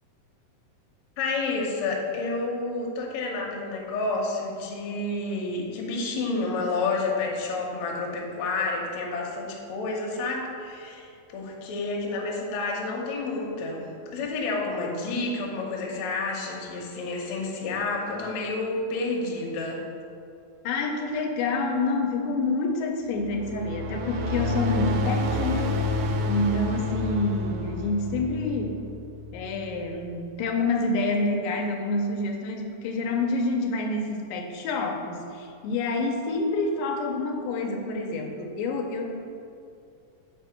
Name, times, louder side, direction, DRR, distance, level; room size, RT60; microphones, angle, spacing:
voice 1, 1.2-19.8, left 3 dB, 70° left, -1 dB, 1.7 m, -30 dB
voice 2, 20.6-25.7 26.3-28.8 29.3-39.1, left 2 dB, 85° left, 2 dB, 2.3 m, -27 dB
sound 1, 23.1-29.8, left 2 dB, 80° right, 2.0 m, -29 dB
5.2 x 4.3 x 5.6 m, 2.5 s
omnidirectional pair, 4.0 m